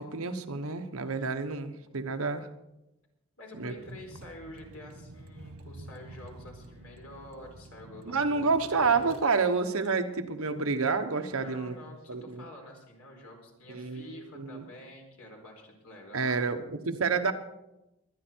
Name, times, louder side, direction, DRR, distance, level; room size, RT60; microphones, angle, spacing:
voice 1, 0.0-2.5 3.6-3.7 8.1-11.7 12.1-12.4 13.7-14.0 14.4-14.6 16.1-17.3, right 4 dB, 70° right, 7 dB, 1.1 m, -29 dB
voice 2, 3.4-9.5 11.3-16.5, left 1 dB, 80° left, 1 dB, 4.4 m, -48 dB
Vehicle, 3.8-9.2, right 1 dB, 90° right, 1.6 m, -48 dB
23.5 x 10.0 x 4.6 m, 0.94 s
head